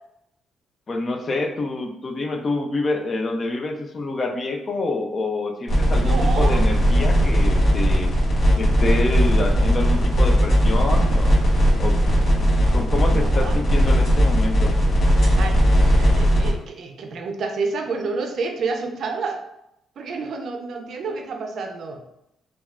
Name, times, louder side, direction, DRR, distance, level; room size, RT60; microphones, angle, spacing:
voice 1, 0.9-8.1 8.6-11.3 11.8-12.0 12.6-14.8, left 2 dB, 40° left, 4 dB, 0.5 m, -27 dB
sound 1, 5.7-16.5, equal, 60° left, 1.3 m, -18 dB
voice 2, 5.9-6.6 12.4-12.5 13.1-13.6 15.4-19.4 20.0-22.0, right 4 dB, 60° right, 5 dB, 0.4 m, -29 dB
3.3 x 2.3 x 2.4 m, 0.82 s
cardioid pair, 90°, 0 cm